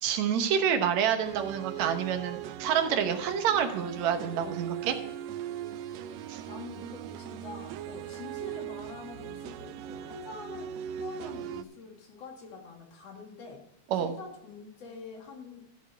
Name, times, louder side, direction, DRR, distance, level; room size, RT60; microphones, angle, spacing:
voice 1, 0.0-5.0 6.3-6.4 13.9-14.1, right 8 dB, 70° right, 7 dB, 2.2 m, -28 dB
sound 1, 1.2-11.6, right 10 dB, 90° right, 1.5 m, -40 dB
voice 2, 6.5-13.6 13.9-15.6, left 4 dB, 55° left, 2 dB, 3.0 m, -45 dB
13.5 x 7.1 x 4.6 m, 0.83 s
omnidirectional pair, 3.6 m